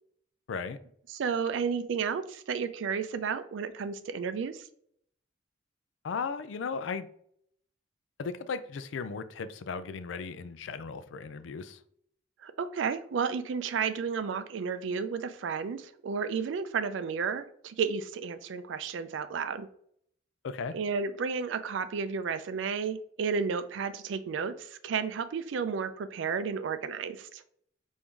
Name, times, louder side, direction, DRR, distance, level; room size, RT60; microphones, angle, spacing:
voice 1, 0.5-0.8 6.0-7.1 8.2-11.8 20.4-20.8, left 5 dB, 85° left, 0.4 m, -36 dB
voice 2, 1.1-4.7 12.4-19.7 20.7-27.4, right 6 dB, 80° right, 0.4 m, -32 dB
4.5 x 2.6 x 3.6 m
head